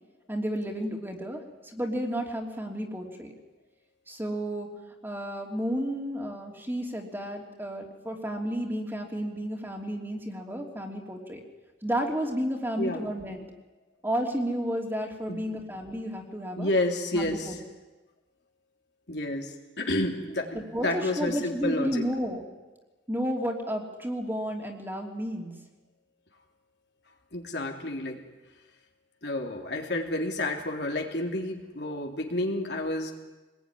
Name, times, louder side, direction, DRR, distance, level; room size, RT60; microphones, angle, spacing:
voice 1, 0.3-3.3 4.1-4.7 5.0-11.4 11.8-13.4 14.0-16.7 17.1-17.6 20.5-22.4 23.1-25.5, equal, 10° right, 1 dB, 3.1 m, -32 dB
voice 2, 16.6-17.6 19.1-22.1 27.3-28.2 29.2-33.2, left 1 dB, 65° left, 2 dB, 3.3 m, -30 dB
25.5 x 20.5 x 9.9 m, 1.2 s
head